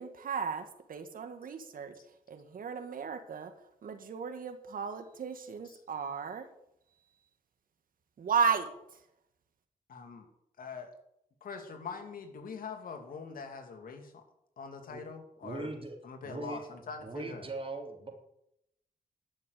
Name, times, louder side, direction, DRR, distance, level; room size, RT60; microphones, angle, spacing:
voice 1, 0.0-6.5 8.2-9.0, right 6 dB, 75° right, 8 dB, 2.0 m, -35 dB
voice 2, 9.9-10.3 10.6-10.9 11.4-14.2 14.6-15.7 16.0-17.5, left 5 dB, 80° left, 5 dB, 2.5 m, -43 dB
voice 3, 15.4-16.0 16.2-16.6 17.0-18.1, right 3 dB, 40° right, 3 dB, 3.4 m, -40 dB
11.5 x 6.9 x 9.6 m, 0.77 s
cardioid pair, 70°, 14 cm